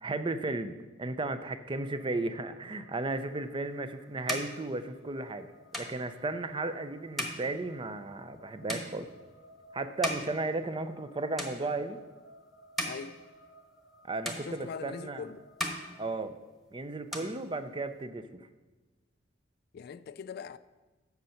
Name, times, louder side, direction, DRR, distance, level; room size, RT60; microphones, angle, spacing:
voice 1, 0.0-5.5 5.8-9.1 9.7-12.0 14.0-15.3 16.0-16.4 16.7-18.5, right 2 dB, 25° right, 0.5 m, -35 dB
sound 1, 1.7-16.0, left 1 dB, 85° left, 0.9 m, -59 dB
sound 2, 3.4-11.1 11.3-12.1 12.5-14.0 14.2-15.1 15.4-16.7 16.9-18.0, equal, ahead, 1.2 m, -40 dB
voice 2, 12.8-13.2 14.4-15.5 17.1-17.3 19.7-20.6, left 6 dB, 55° left, 0.3 m, -42 dB
8.1 x 6.5 x 5.7 m
head